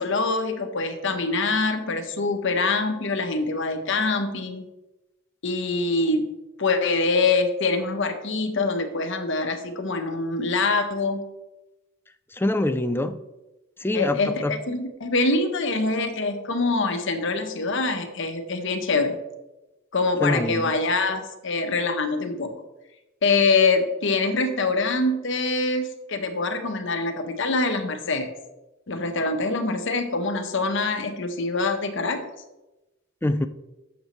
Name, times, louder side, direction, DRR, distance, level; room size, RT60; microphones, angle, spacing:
voice 1, 0.0-4.6 5.4-6.3 6.6-11.2 13.9-19.2 19.9-22.5 23.2-28.3 28.9-32.2, left 3 dB, 65° left, 6 dB, 1.1 m, -24 dB
voice 2, 12.4-13.1 13.8-14.6 20.2-20.7 33.2-33.5, left 1 dB, 10° left, 10 dB, 0.4 m, -24 dB
11.5 x 7.1 x 3.1 m, 1.0 s
head